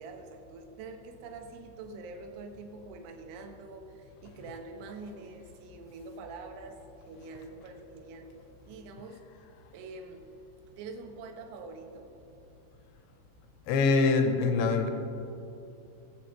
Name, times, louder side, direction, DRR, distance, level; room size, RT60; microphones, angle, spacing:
voice 1, 0.0-6.8 7.1-8.4 8.7-9.3 9.7-10.3 10.8-12.1, right 3 dB, 80° right, 5 dB, 3.4 m, -45 dB
voice 2, 13.7-14.9, left 4 dB, 80° left, 6 dB, 2.8 m, -24 dB
21.5 x 8.0 x 3.1 m, 2.7 s
omnidirectional pair, 5.4 m